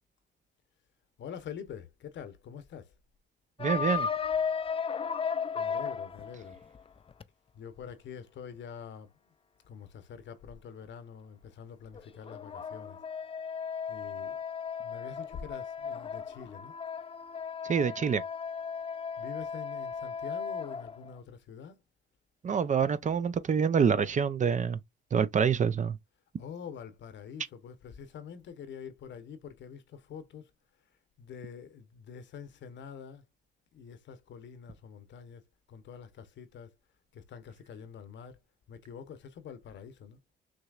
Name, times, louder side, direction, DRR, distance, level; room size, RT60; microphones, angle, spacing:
voice 1, 1.2-2.9 5.6-6.6 7.5-9.1 9.6-13.0 13.9-14.4 14.8-16.8 19.2-21.8 26.4-30.5 31.2-33.2 33.7-35.4 35.7-36.8 37.1-38.4 38.7-40.2, left 7 dB, 65° left, 1.0 m, -46 dB
sound 1, 3.6-7.2 11.9-21.1, left 6 dB, 30° left, 0.4 m, -35 dB
voice 2, 3.6-4.1 17.6-18.2 22.4-24.8 25.1-26.0, right 6 dB, 40° right, 0.6 m, -26 dB
6.2 x 3.1 x 2.4 m
cardioid pair, 90°, 20 cm